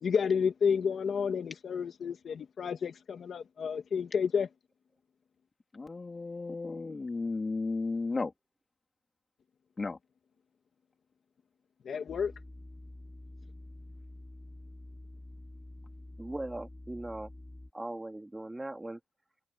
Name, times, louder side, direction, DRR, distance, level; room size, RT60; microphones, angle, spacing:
voice 1, 0.0-4.5 11.8-12.3, left 6 dB, 70° left, 2.0 m, -30 dB
voice 2, 5.7-8.3 9.8-10.0, left 3 dB, 35° left, 3.6 m, -34 dB
sound 1, 12.1-17.7, left 1 dB, 15° left, 3.3 m, -48 dB
voice 3, 16.2-17.3 17.7-19.0, right 1 dB, 15° right, 3.6 m, -39 dB
wide cardioid pair, 105°, 0 cm